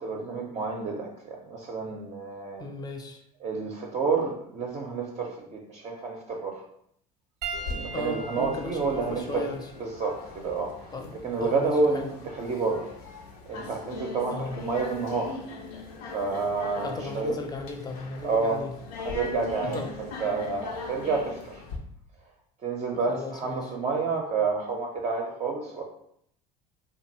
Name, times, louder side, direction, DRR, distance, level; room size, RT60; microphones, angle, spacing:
voice 1, 0.0-2.7 3.4-6.6 7.7-9.4 9.8-10.9 11.2-12.9 13.5-15.4 16.1-17.4 18.2-18.7 19.0-21.6 22.6-25.8, right 4 dB, 35° right, 0 dB, 0.5 m, -29 dB
voice 2, 2.6-3.2 7.9-9.6 10.9-11.1 11.4-12.1 14.3-14.6 16.8-18.7 19.6-19.9 23.1-23.7, left 2 dB, 20° left, 4 dB, 0.5 m, -36 dB
Piano, 7.4-12.1 13.0-13.2 15.1-15.2, right 4 dB, 85° right, 0.5 m, -42 dB
sound 1, 7.5-21.8, left 4 dB, 80° left, 0.5 m, -41 dB
2.6 x 2.3 x 2.9 m, 0.70 s
hypercardioid pair, 75°, 20 cm